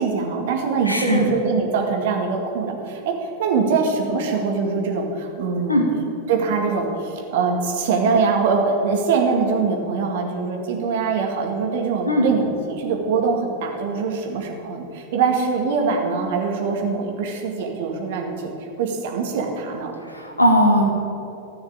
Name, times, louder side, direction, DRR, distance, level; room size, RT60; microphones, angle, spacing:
voice 1, 0.0-5.8 6.3-18.5 18.8-19.9, right 4 dB, 55° right, 2 dB, 2.1 m, -23 dB
voice 2, 0.9-1.2 5.7-5.8 12.1-12.3 20.1-20.8, left 1 dB, 85° left, 2 dB, 1.8 m, -18 dB
14.0 x 6.4 x 8.9 m, 2.9 s
figure-of-eight pair, 90°, 0 cm